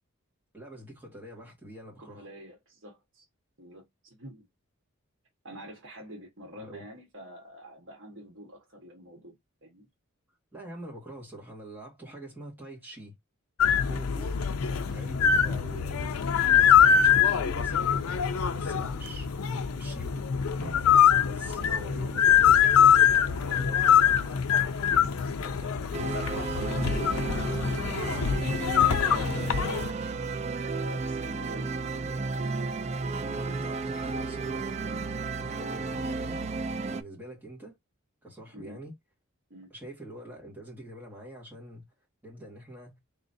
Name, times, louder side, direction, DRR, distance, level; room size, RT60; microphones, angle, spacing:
voice 1, 0.5-2.3 6.5-6.8 10.5-13.1 13.8-14.4 14.9-16.2 16.5-18.1 18.5-19.3 19.7-20.2 21.2-22.5 23.5-23.8 33.4-35.0 35.4-36.4 36.8-37.8 38.2-38.9 39.7-41.8 42.2-43.0, right 1 dB, 10° right, 1.7 m, -45 dB
voice 2, 2.0-3.2 3.6-4.5 5.4-9.9 15.2-15.6 19.0-19.2 21.2-22.2 23.1-28.4 28.7-29.6 30.6-32.3 38.5-38.8 39.5-39.7, equal, 60° right, 1.3 m, -47 dB
sound 1, 13.6-29.9, left 8 dB, 80° left, 0.5 m, -23 dB
Drum, 20.6-23.3, equal, 55° left, 1.7 m, -47 dB
sound 2, 25.9-37.0, right 4 dB, 30° right, 0.3 m, -33 dB
3.9 x 3.0 x 2.6 m
head